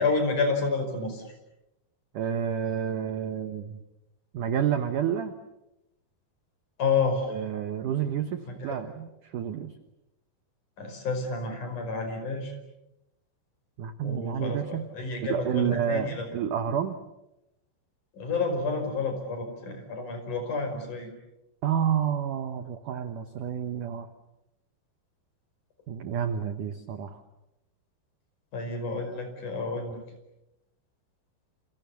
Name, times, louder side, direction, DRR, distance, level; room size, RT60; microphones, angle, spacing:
voice 1, 0.0-1.4 6.8-7.4 8.5-8.8 10.8-12.5 14.0-16.3 18.1-21.1 28.5-30.0, left 4 dB, 45° left, 6 dB, 6.4 m, -30 dB
voice 2, 2.1-3.8 4.3-5.3 7.3-9.7 13.8-14.9 15.3-17.0 21.6-24.1 25.9-27.2, right 9 dB, 65° right, 9 dB, 2.1 m, -29 dB
29.0 x 28.0 x 7.0 m, 0.91 s
omnidirectional pair, 5.2 m